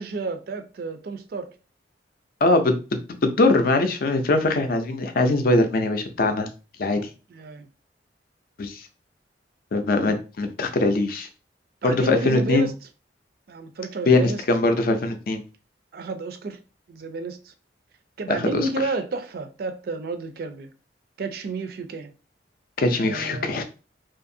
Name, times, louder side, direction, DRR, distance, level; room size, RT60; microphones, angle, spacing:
voice 1, 0.0-1.5 7.3-7.7 11.8-12.7 13.5-14.4 15.9-16.6 16.9-17.5 18.2-20.7 21.2-22.1 22.9-23.6, right 3 dB, 55° right, 0.3 m, -31 dB
voice 2, 2.4-2.8 3.2-6.5 6.8-7.1 8.6-8.8 9.7-11.3 11.8-12.7 14.1-15.4 18.3-18.6 22.8-23.6, left 2 dB, 55° left, 0.4 m, -21 dB
2.7 x 2.4 x 2.6 m
head